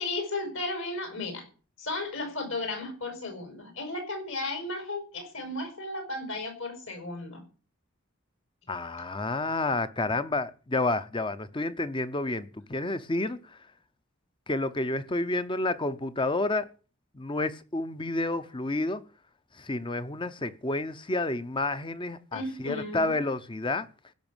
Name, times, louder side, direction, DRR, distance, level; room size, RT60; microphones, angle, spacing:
voice 1, 0.0-1.5 1.8-7.4 22.3-23.2, left 2 dB, 60° left, 5.2 m, -34 dB
voice 2, 8.7-13.6 14.5-16.7 17.1-19.0 19.5-23.9, left 2 dB, 20° left, 0.7 m, -30 dB
16.0 x 6.2 x 9.0 m
head